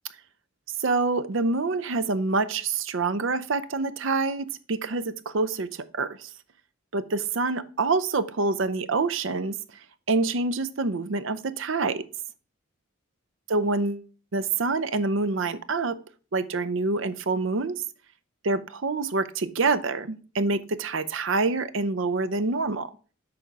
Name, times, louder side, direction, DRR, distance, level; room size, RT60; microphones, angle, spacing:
voice 1, 0.8-6.3 6.9-9.6 10.1-12.0 13.5-14.1 14.3-16.0 16.3-17.8 18.4-22.9, right 3 dB, 65° right, 0.6 m, -26 dB
8.5 x 5.2 x 4.6 m
head